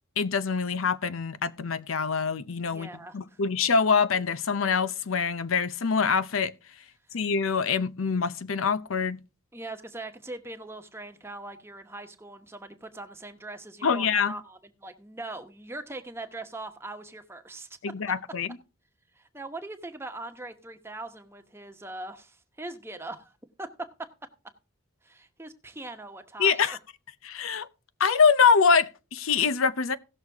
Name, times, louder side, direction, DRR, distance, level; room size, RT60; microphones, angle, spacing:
voice 1, 0.2-6.5 7.1-9.2 13.8-14.3 17.8-18.5 26.4-26.8 27.2-27.7 28.0-30.0, left 5 dB, 90° left, 0.7 m, -24 dB
voice 2, 2.7-3.4 7.1-7.2 9.5-17.7 19.1-23.3 23.6-24.1 25.0-26.8, right 2 dB, 10° right, 1.0 m, -41 dB
17.5 x 6.5 x 3.5 m
head